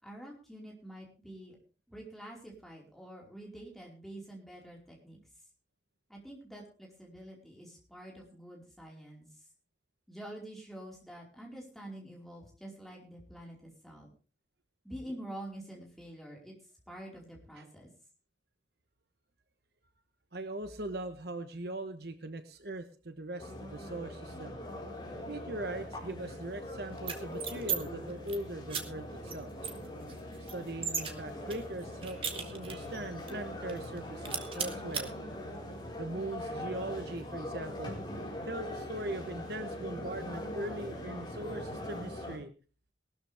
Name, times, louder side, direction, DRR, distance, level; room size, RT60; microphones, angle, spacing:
voice 1, 0.0-1.6 1.9-5.2 6.1-9.5 10.1-14.1 14.8-16.6 16.9-17.9, right 1 dB, ahead, -3 dB, 4.7 m, -47 dB
voice 2, 20.3-24.6 25.3-29.5 30.5-35.1 36.0-38.0 38.5-42.5, right 1 dB, 55° right, 8 dB, 1.1 m, -40 dB
sound 1, 23.4-42.4, left 1 dB, 25° left, 4.7 m, -42 dB
sound 2, 27.0-27.8 28.1-28.4 28.7-28.8 29.3-29.4 29.6-31.1 31.5-32.9 33.3-33.4 33.7-34.0 34.2-35.0, right 7 dB, 30° right, 1.9 m, -36 dB
19.0 x 13.0 x 3.5 m, 0.36 s
head